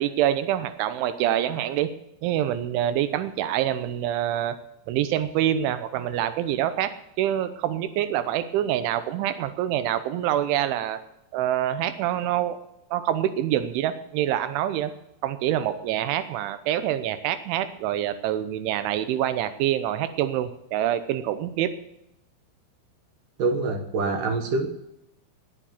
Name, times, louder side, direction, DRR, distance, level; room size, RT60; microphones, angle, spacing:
voice 1, 0.0-1.9 2.2-4.6 4.9-11.0 11.3-12.6 12.9-14.9 15.2-21.7, right 11 dB, 85° right, 11 dB, 3.3 m, -26 dB
voice 2, 23.4-24.7, right 3 dB, 60° right, 6 dB, 2.3 m, -25 dB
20.0 x 7.5 x 7.1 m, 0.83 s
omnidirectional pair, 5.3 m